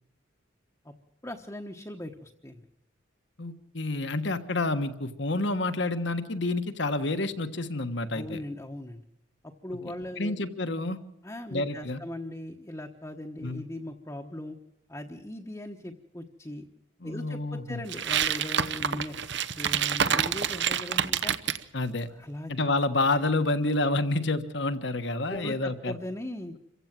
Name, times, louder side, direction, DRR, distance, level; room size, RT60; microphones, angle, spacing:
voice 1, 1.2-2.6 8.1-9.0 9.4-10.4 11.2-14.6 14.9-16.6 17.0-19.1 19.5-21.3 22.1-22.5 25.3-26.5, left 1 dB, 15° left, 2 dB, 1.1 m, -39 dB
voice 2, 3.4-8.4 10.2-11.0 11.5-12.0 13.4-13.6 17.0-17.8 21.7-22.1 22.5-25.9, left 2 dB, 60° left, 9 dB, 1.4 m, -28 dB
sound 1, 17.9-21.6, right 8 dB, 60° right, 0.9 m, -27 dB
27.5 x 15.5 x 7.6 m, 0.86 s
head